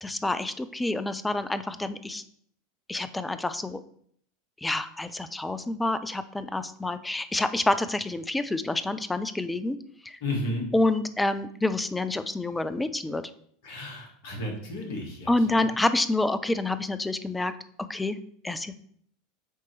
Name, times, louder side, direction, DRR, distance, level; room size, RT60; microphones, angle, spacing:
voice 1, 0.0-2.2 2.9-3.8 4.6-9.8 10.0-10.2 10.7-13.2 15.3-17.5 17.9-18.8, left 2 dB, 10° left, 12 dB, 0.4 m, -28 dB
voice 2, 10.2-10.7 13.6-15.7, left 1 dB, 60° left, 1 dB, 1.8 m, -33 dB
7.9 x 3.0 x 4.5 m, 0.64 s
figure-of-eight pair, 80°, 0 cm